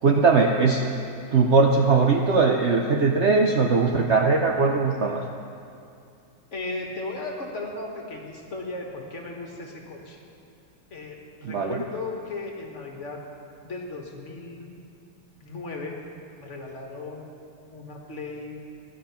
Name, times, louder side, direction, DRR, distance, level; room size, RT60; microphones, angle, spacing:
voice 1, 0.0-0.9 1.3-5.2 11.4-11.8, right 4 dB, 90° right, 2 dB, 0.6 m, -20 dB
voice 2, 6.5-10.2 10.9-13.2 13.6-14.8 15.4-16.0 16.4-17.2 17.7-18.6, left 3 dB, 40° left, 0 dB, 1.6 m, -36 dB
13.5 x 10.0 x 5.8 m, 2.5 s
omnidirectional pair, 2.0 m